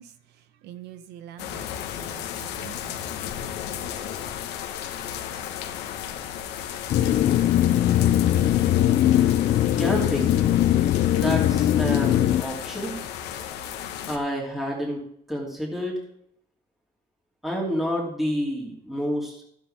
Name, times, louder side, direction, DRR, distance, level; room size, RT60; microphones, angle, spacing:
voice 1, 0.0-1.7 2.0-3.1, right 10 dB, 80° right, 1.0 m, -45 dB
sound 1, 1.4-14.2, left 9 dB, 90° left, 1.2 m, -34 dB
sound 2, 6.9-12.4, left 12 dB, 50° left, 0.5 m, -20 dB
voice 2, 9.8-10.4 11.1-13.0 14.1-15.0 15.3-16.0 17.4-19.4, equal, ahead, 2.8 m, -29 dB
13.0 x 9.9 x 3.4 m
cardioid pair, 110°, 17 cm